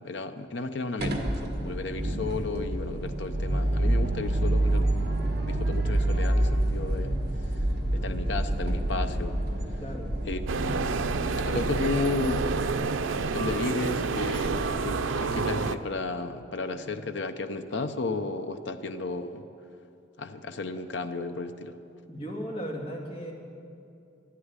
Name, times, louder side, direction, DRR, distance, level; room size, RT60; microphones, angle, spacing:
voice 1, 0.0-7.2 7.5-7.7 7.9-9.4 10.3-11.1 11.4-12.5 13.3-19.4 20.2-21.8, left 3 dB, 65° left, 8 dB, 0.7 m, -33 dB
sound 1, 1.0-12.7, right 1 dB, 55° right, 1.8 m, -28 dB
voice 2, 9.8-10.2 22.1-23.3, equal, 30° left, -1 dB, 2.1 m, -36 dB
sound 2, 10.5-15.8, right 4 dB, 90° right, 0.6 m, -28 dB
12.5 x 11.5 x 9.6 m, 2.6 s
head